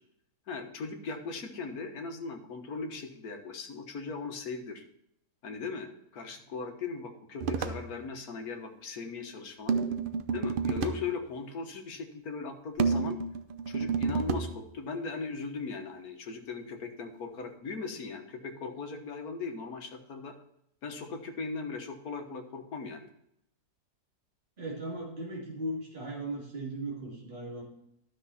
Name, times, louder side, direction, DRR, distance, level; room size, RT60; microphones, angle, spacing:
voice 1, 0.5-4.8 5.4-9.8 10.3-13.2 13.7-20.3 20.8-23.1, left 4 dB, 65° left, 4 dB, 1.7 m, -38 dB
sound 1, 7.4-7.9 9.7-11.1 12.8-14.5, right 5 dB, 75° right, 0.5 m, -30 dB
voice 2, 24.6-27.6, right 1 dB, 30° right, -4 dB, 2.9 m, -37 dB
12.5 x 6.2 x 4.2 m, 0.76 s
omnidirectional pair, 1.8 m